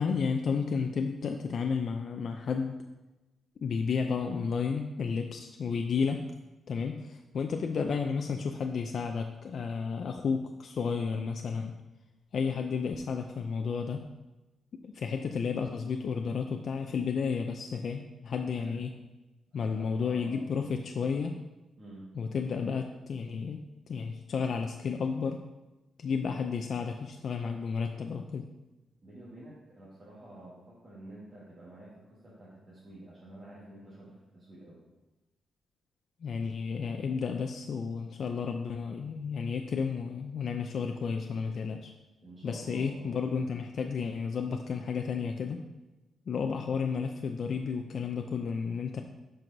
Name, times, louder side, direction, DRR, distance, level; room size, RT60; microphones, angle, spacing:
voice 1, 0.0-2.8 3.6-6.2 6.7-11.7 12.3-14.0 14.8-18.9 19.5-21.4 22.2-23.6 23.9-25.4 26.0-28.4 36.2-41.9 42.4-45.6 46.3-49.0, left 5 dB, 50° left, 4 dB, 0.4 m, -32 dB
voice 2, 19.5-20.4 21.8-22.1 29.0-34.8 42.2-43.5, right 1 dB, 25° right, -9 dB, 1.5 m, -50 dB
11.5 x 4.6 x 2.6 m, 1.1 s
wide cardioid pair, 155°, 0 cm